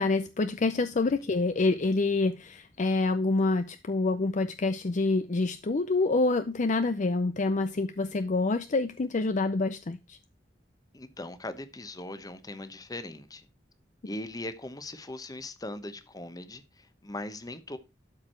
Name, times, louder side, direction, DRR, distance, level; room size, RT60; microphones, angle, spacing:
voice 1, 0.0-10.2, left 3 dB, 45° left, 0.5 m, -27 dB
voice 2, 10.9-13.5 14.0-17.8, left 1 dB, 20° left, 1.0 m, -40 dB
12.5 x 4.9 x 4.4 m
head